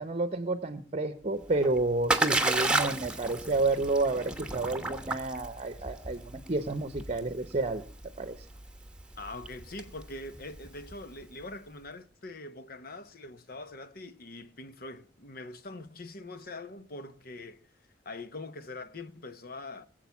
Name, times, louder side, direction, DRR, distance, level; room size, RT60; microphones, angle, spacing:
voice 1, 0.0-7.8 8.2-8.5, right 2 dB, 35° right, 0.8 m, -30 dB
Splash splatter, 1.4-11.2, right 2 dB, 5° right, 1.2 m, -33 dB
voice 2, 9.2-17.7 18.0-19.9, left 2 dB, 55° left, 1.0 m, -43 dB
21.0 x 7.9 x 7.1 m
head